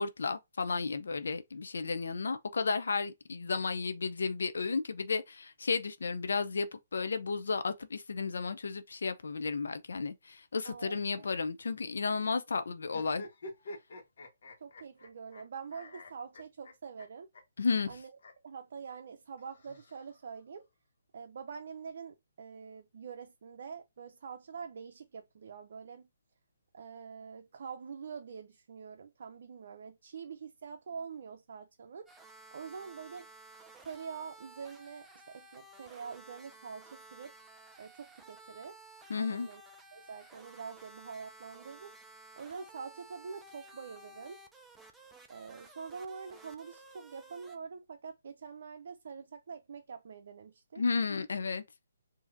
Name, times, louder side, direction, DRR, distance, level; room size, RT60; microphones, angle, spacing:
voice 1, 0.0-13.2 17.6-17.9 39.1-39.5 50.8-51.6, left 4 dB, 75° left, 0.5 m, -33 dB
voice 2, 10.6-11.3 14.6-17.3 17.9-18.2 18.4-20.7 21.1-26.1 26.7-32.1 32.5-33.3 33.8-37.3 37.8-38.8 39.2-39.6 39.9-41.9 42.4-44.4 45.3-50.8, right 6 dB, 60° right, 0.5 m, -45 dB
sound 1, 12.9-15.4 15.7-17.1 17.3-17.4 17.7-17.8 18.2-18.3 19.4-20.4, left 1 dB, 60° left, 1.3 m, -48 dB
sound 2, 32.1-47.6, right 2 dB, 5° right, 0.5 m, -55 dB
4.9 x 2.7 x 2.6 m
hypercardioid pair, 155°, 0 cm